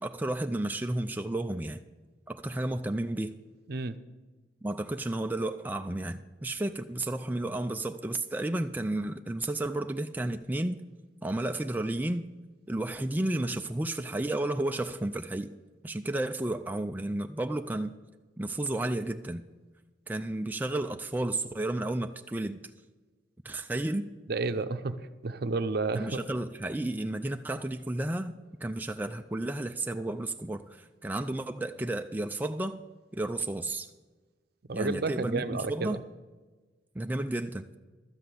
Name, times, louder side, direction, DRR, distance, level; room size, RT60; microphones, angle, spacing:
voice 1, 0.0-1.8 2.3-3.3 4.6-10.8 11.2-12.2 12.7-15.5 15.8-17.9 18.4-19.4 20.1-22.6 23.4-24.1 25.9-32.8 33.1-33.9 34.7-36.0 37.0-37.6, right 1 dB, 10° right, 0.4 m, -32 dB
voice 2, 24.3-26.2 34.7-36.0, right 3 dB, 60° right, 0.6 m, -31 dB
12.5 x 7.8 x 6.9 m
head